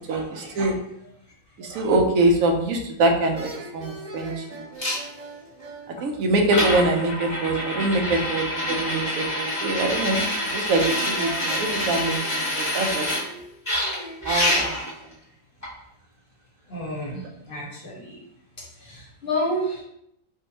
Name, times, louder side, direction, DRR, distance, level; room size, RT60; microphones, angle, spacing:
voice 1, 0.1-0.8 1.6-4.6 5.9-13.1 14.2-14.8, right 2 dB, 80° right, 3 dB, 1.0 m, -24 dB
sound 1, 2.6-2.9 3.3-7.0 10.2-14.7, right 3 dB, 60° right, 0.3 m, -42 dB
sound 2, 4.8-5.0 6.0-6.1 6.5-13.2 13.7-14.9 15.6-15.7, left 1 dB, 10° left, 1.3 m, -26 dB
voice 2, 16.7-18.2 18.8-19.8, left 1 dB, 40° left, -5 dB, 1.3 m, -29 dB
4.6 x 2.5 x 2.9 m, 0.76 s
omnidirectional pair, 1.4 m